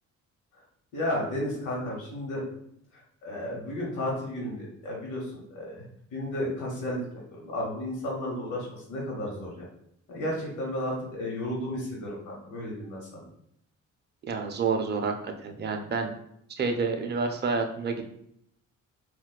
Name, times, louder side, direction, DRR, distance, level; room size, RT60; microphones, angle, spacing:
voice 1, 0.9-2.4 3.2-5.9 6.1-7.0 7.3-9.6 10.1-13.3, left 1 dB, 80° left, -3 dB, 1.0 m, -33 dB
voice 2, 14.3-16.1 16.5-18.1, right 4 dB, 35° right, 4 dB, 0.5 m, -29 dB
4.0 x 2.3 x 2.2 m, 0.74 s
cardioid pair, 90°, 30 cm